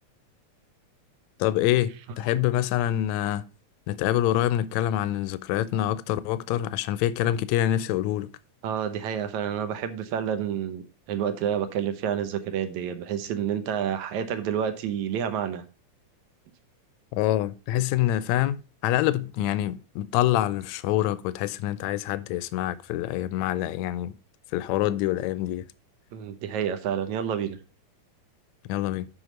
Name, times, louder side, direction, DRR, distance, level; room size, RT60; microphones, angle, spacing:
voice 1, 1.4-3.5 3.9-8.3 17.1-18.6 18.8-24.1 24.5-25.7 28.7-29.1, left 13 dB, 80° left, 1.8 m, -26 dB
voice 2, 8.6-15.6 26.1-27.6, right 8 dB, 75° right, 2.3 m, -29 dB
8.1 x 5.5 x 5.1 m
omnidirectional pair, 3.5 m